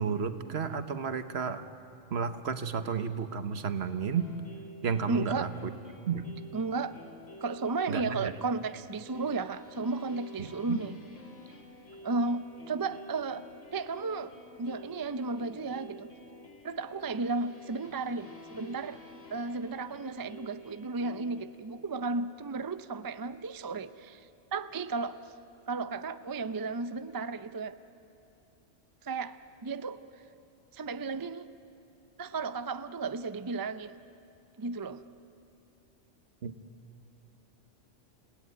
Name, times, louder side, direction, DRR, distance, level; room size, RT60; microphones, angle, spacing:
voice 1, 0.0-1.6 2.1-4.3 4.8-5.7 6.1-6.3 7.9-8.3 10.4-10.8 36.4-36.5, right 6 dB, 60° right, 10 dB, 1.2 m, -32 dB
sound 1, 4.1-21.9, left 1 dB, 90° left, 2.8 m, -51 dB
voice 2, 5.1-5.5 6.5-7.0 7.4-10.9 12.0-13.4 13.7-14.3 14.6-16.1 16.6-19.0 19.3-24.3 24.5-25.2 25.7-27.8 29.0-30.0 30.7-31.5 32.2-34.0 34.6-35.0, right 3 dB, 35° right, 12 dB, 0.3 m, -34 dB
29.5 x 17.0 x 9.3 m, 2.6 s
omnidirectional pair, 1.3 m